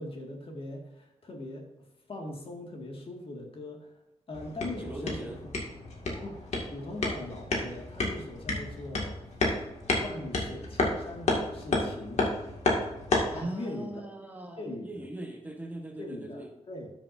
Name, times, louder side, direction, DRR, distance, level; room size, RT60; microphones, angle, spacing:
voice 1, 0.0-3.9 4.3-5.3 6.2-6.4 6.7-9.2 10.0-12.3 13.3-14.0 14.6-14.9 16.0-16.9, left 1 dB, 50° left, 1 dB, 2.0 m, -40 dB
sound 1, 4.3-13.4, left 2 dB, 75° left, 2.2 m, -31 dB
voice 2, 4.8-5.4 10.1-10.2 13.3-16.5, right 1 dB, 15° right, 2 dB, 1.3 m, -40 dB
13.0 x 7.4 x 2.7 m, 0.93 s
wide cardioid pair, 140°, 12 cm